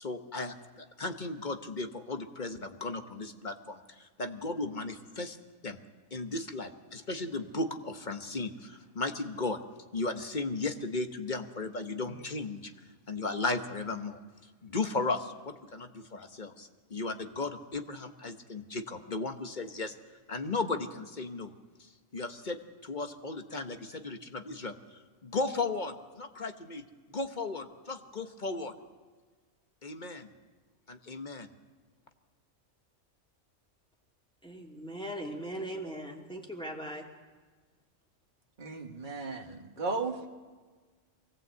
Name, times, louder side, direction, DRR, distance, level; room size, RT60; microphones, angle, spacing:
voice 1, 0.0-5.4 5.6-5.8 6.1-9.6 9.9-12.7 13.1-14.2 14.6-19.9 20.3-21.5 22.1-28.7 29.8-30.3 30.9-31.5, left 3 dB, 40° left, 7 dB, 1.2 m, -36 dB
voice 2, 34.4-37.1, right 1 dB, 5° left, -1 dB, 2.6 m, -39 dB
voice 3, 38.6-40.3, right 3 dB, 40° right, 3 dB, 1.7 m, -35 dB
23.5 x 18.0 x 8.2 m, 1.4 s
omnidirectional pair, 1.3 m